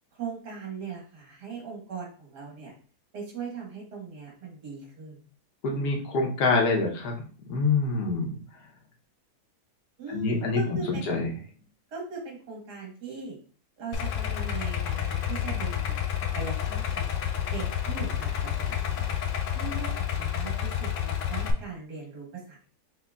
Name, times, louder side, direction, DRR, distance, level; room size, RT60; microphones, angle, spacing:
voice 1, 0.1-2.7 3.1-5.2 10.0-11.2 11.9-13.4 13.8-16.0 16.3-17.2 17.5-19.1 19.5-22.7, right 4 dB, 90° right, -1 dB, 2.1 m, -39 dB
voice 2, 5.6-7.1 7.5-8.4 10.1-11.3, left 3 dB, 80° left, 0 dB, 1.5 m, -26 dB
Idling, 13.9-21.5, left 9 dB, 65° left, 0.8 m, -29 dB
5.7 x 3.1 x 2.3 m, 0.40 s
omnidirectional pair, 1.7 m